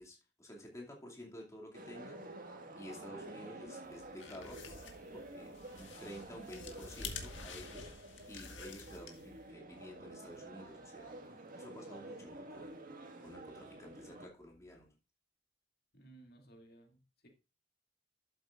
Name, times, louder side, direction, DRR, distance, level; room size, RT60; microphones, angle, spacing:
voice 1, 0.0-11.2 11.5-12.7 13.2-15.0, equal, 15° left, 2.4 m, -52 dB
sound 1, 1.7-14.3, right 2 dB, 50° right, 1.7 m, -50 dB
sound 2, 3.9-9.5, left 5 dB, 75° left, 1.8 m, -49 dB
voice 2, 15.9-17.3, right 2 dB, 55° left, 2.4 m, -59 dB
12.0 x 8.0 x 2.5 m
head